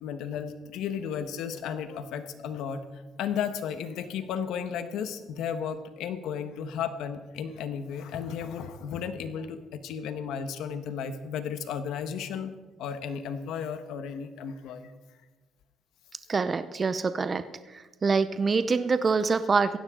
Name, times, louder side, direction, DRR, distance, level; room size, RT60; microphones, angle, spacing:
voice 1, 0.0-2.8 3.2-14.9, left 7 dB, 80° left, 10 dB, 1.2 m, -34 dB
voice 2, 16.3-17.4 18.0-19.8, right 4 dB, 30° right, 12 dB, 0.5 m, -25 dB
16.5 x 14.5 x 3.8 m, 1.2 s
cardioid pair, 120°, 0 cm